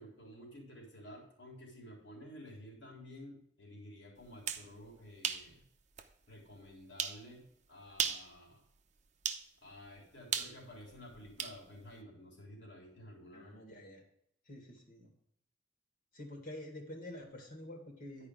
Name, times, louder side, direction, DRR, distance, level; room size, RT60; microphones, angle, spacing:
voice 1, 0.0-5.6 6.3-8.6 9.6-13.5, left 1 dB, 75° left, -2 dB, 3.6 m, -52 dB
sound 1, 4.2-4.7 5.2-5.5 6.0-6.1 7.0-7.2 7.9-8.3 9.2-9.5 10.3-11.6, right 8 dB, 40° right, 0.8 m, -35 dB
voice 2, 13.3-14.0 14.5-15.1 16.1-18.3, left 1 dB, 50° left, 2 dB, 2.2 m, -48 dB
11.0 x 4.9 x 4.9 m, 0.74 s
head